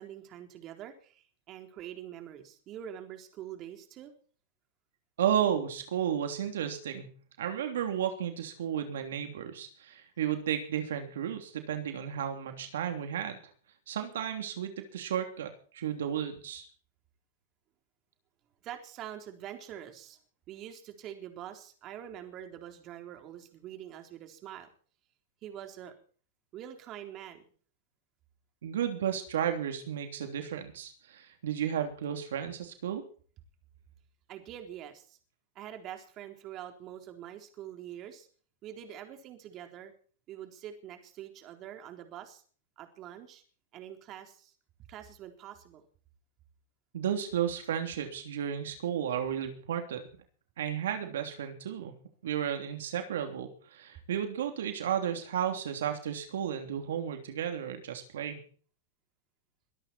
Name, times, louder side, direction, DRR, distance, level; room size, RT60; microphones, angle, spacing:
voice 1, 0.0-4.1 18.6-20.2 20.5-24.7 25.4-25.9 26.5-27.4 34.3-35.2 35.6-38.3 38.6-39.9 40.3-42.4 42.8-43.4 43.7-44.5 44.9-45.8, right 10 dB, 35° right, 5 dB, 3.8 m, -45 dB
voice 2, 5.2-7.1 7.4-13.4 13.9-16.7 28.6-33.0 46.9-50.0 50.6-51.9 52.2-58.4, right 9 dB, 80° right, 6 dB, 3.1 m, -33 dB
23.0 x 13.0 x 4.4 m, 0.43 s
hypercardioid pair, 130°, 0 cm